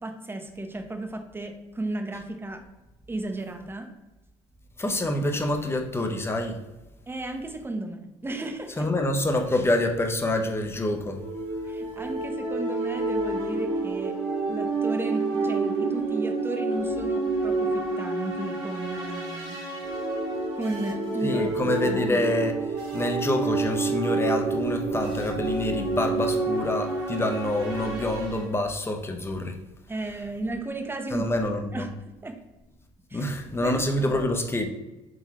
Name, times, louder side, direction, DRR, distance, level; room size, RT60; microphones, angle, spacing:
voice 1, 0.0-2.6 3.1-3.9 7.1-8.9 11.7-14.2 14.4-19.6 20.6-22.3 29.9-31.3 31.7-31.9 32.2-32.3 33.1-33.2 33.6-34.2, right 2 dB, 15° right, 4 dB, 0.7 m, -34 dB
voice 2, 4.8-6.6 8.8-11.2 21.2-22.5 22.9-29.6 31.1-31.8 33.1-34.7, left 1 dB, 20° left, 4 dB, 0.7 m, -26 dB
sound 1, 11.1-28.4, right 3 dB, 90° right, 1.2 m, -29 dB
3.8 x 3.4 x 3.0 m, 1.0 s
supercardioid pair, 70°, 14 cm